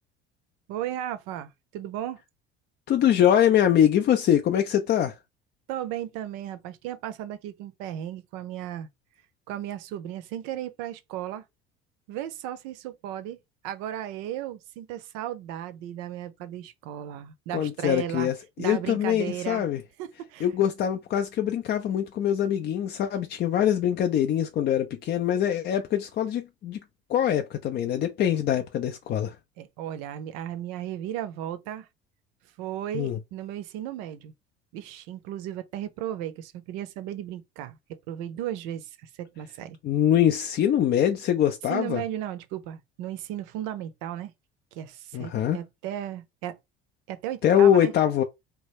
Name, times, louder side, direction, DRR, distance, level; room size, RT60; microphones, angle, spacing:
voice 1, 0.7-2.2 5.7-8.9 9.5-11.4 12.1-13.4 13.6-18.3 18.6-19.7 20.0-20.5 29.6-31.9 32.6-34.3 34.7-39.8 41.7-44.3 44.7-46.6 47.1-47.9, right 11 dB, 55° right, 0.6 m, -35 dB
voice 2, 2.9-5.1 17.5-19.8 20.4-26.8 27.1-29.3 32.9-33.2 39.8-42.0 45.1-45.6 47.4-48.2, left 10 dB, 30° left, 0.4 m, -23 dB
2.9 x 2.2 x 3.2 m
figure-of-eight pair, 65°, 32 cm